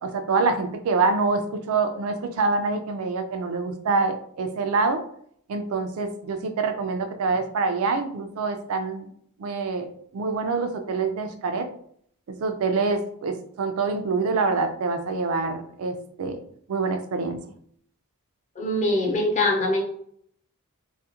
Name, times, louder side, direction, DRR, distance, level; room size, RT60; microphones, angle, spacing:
voice 1, 0.0-5.0 5.5-9.1 9.4-9.9 10.1-11.7 12.3-16.4 16.7-17.4, right 4 dB, 65° right, 7 dB, 0.3 m, -26 dB
voice 2, 18.6-19.8, left 1 dB, 30° left, 0 dB, 0.5 m, -23 dB
2.3 x 2.1 x 2.8 m, 0.64 s
head